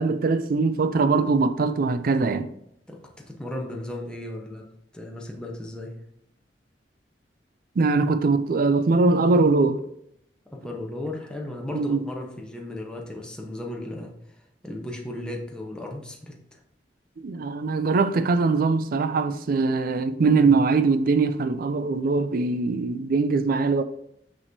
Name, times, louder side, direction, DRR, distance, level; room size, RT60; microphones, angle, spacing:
voice 1, 0.0-2.5 7.8-9.8 11.7-12.1 17.2-23.8, right 4 dB, 55° right, 0.4 m, -22 dB
voice 2, 3.3-4.7 4.9-5.9 10.5-14.1 14.6-16.6, left 1 dB, 5° left, 0.9 m, -35 dB
6.2 x 5.9 x 2.7 m
head